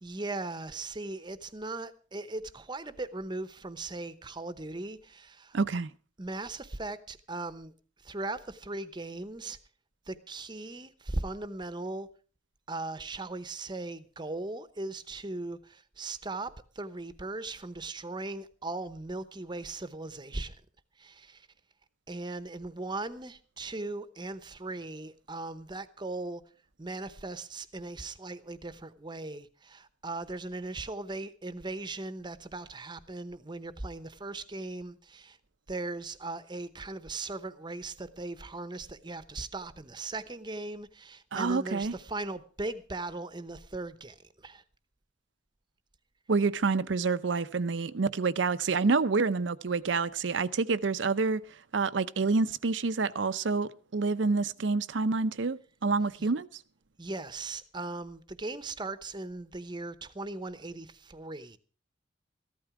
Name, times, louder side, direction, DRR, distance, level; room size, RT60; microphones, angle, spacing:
voice 1, 0.0-5.6 6.2-7.7 8.0-9.6 10.1-12.1 12.7-20.6 21.0-21.5 22.1-26.4 26.8-35.4 35.7-44.6 56.2-56.3 57.0-61.6, right 2 dB, 25° right, 0.8 m, -38 dB
voice 2, 5.5-5.9 41.3-41.9 46.3-51.4 51.7-56.5, right 4 dB, 80° right, 0.6 m, -28 dB
14.5 x 12.5 x 4.8 m
head